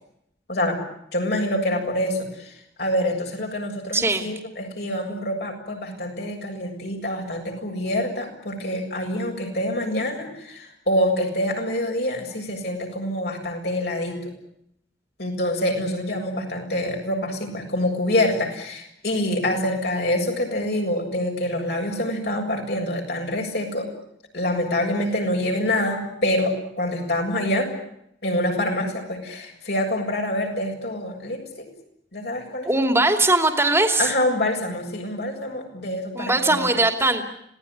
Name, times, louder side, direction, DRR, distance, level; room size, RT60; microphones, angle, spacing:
voice 1, 1.1-2.5 2.8-14.2 15.2-23.9 24.3-27.7 28.2-31.7 32.1-32.8 34.0-36.7, left 1 dB, 65° left, 1 dB, 7.3 m, -26 dB
voice 2, 3.9-4.3 32.6-34.1 36.1-37.2, right 2 dB, 15° right, 5 dB, 2.7 m, -20 dB
27.0 x 18.0 x 10.0 m, 0.78 s
head